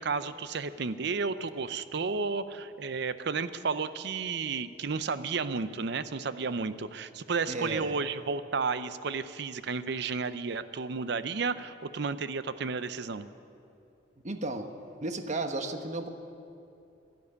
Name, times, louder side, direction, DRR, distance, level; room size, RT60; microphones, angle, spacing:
voice 1, 0.0-13.3, right 4 dB, 65° right, 13 dB, 0.6 m, -32 dB
voice 2, 7.5-7.9 14.2-14.7 15.0-16.1, right 2 dB, 40° right, 7 dB, 1.1 m, -33 dB
12.0 x 12.0 x 9.8 m, 2.7 s
head